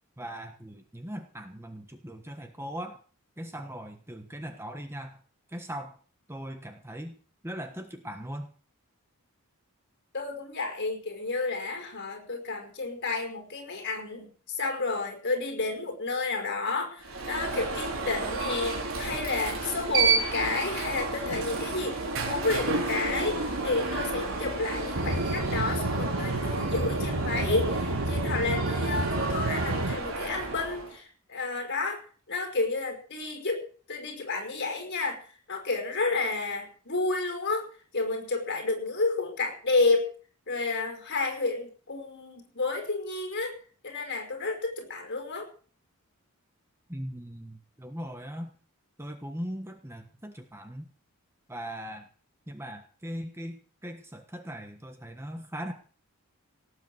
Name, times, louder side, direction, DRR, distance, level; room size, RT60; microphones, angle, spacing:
voice 1, 0.2-3.0 3.4-5.2 5.5-6.0 6.3-7.2 7.4-8.5 46.9-48.5 49.0-50.9 51.5-52.1 52.5-55.7, equal, 10° right, 6 dB, 1.3 m, -39 dB
voice 2, 10.1-32.0 32.3-37.7 37.9-40.1 40.5-45.5, left 3 dB, 50° left, 4 dB, 5.1 m, -31 dB
Alarm, 17.0-31.0, right 3 dB, 65° right, 4.7 m, -31 dB
Aircraft / Engine, 25.0-30.0, right 2 dB, 80° right, 1.7 m, -30 dB
18.0 x 7.9 x 7.9 m, 0.42 s
head